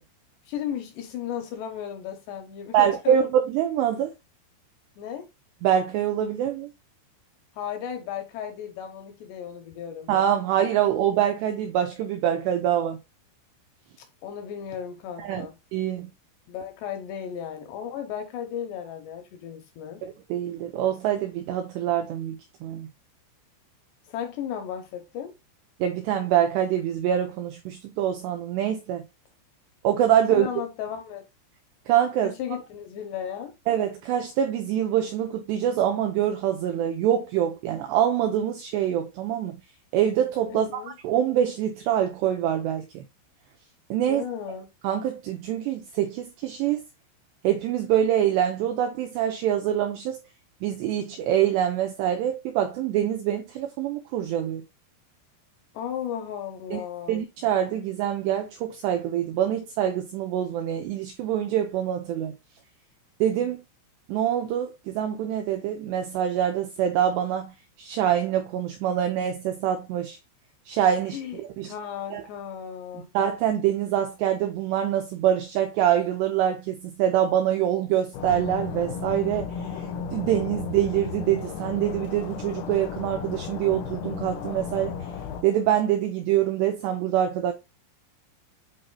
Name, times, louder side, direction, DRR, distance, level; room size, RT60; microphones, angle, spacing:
voice 1, 0.5-3.2 5.0-5.3 7.6-10.1 14.2-15.5 16.5-20.0 24.1-25.3 30.3-31.3 32.2-33.5 40.5-40.9 44.1-44.7 55.7-57.2 71.1-71.4 71.6-73.1, left 9 dB, 75° left, 2.7 m, -35 dB
voice 2, 2.7-4.1 5.6-6.7 10.1-13.0 15.2-15.5 15.7-16.1 20.0-22.9 25.8-29.1 29.8-30.5 31.9-32.3 33.7-39.6 39.9-43.0 43.9-44.2 44.8-46.8 47.4-50.2 50.6-54.6 56.7-56.8 57.1-62.3 63.2-63.6 64.1-70.2 70.7-71.7 72.1-72.2 72.9-85.1 85.4-87.5, right 10 dB, 85° right, 2.4 m, -25 dB
sound 1, 78.1-85.4, left 7 dB, 90° left, 3.9 m, -34 dB
11.0 x 4.3 x 2.2 m
omnidirectional pair, 5.8 m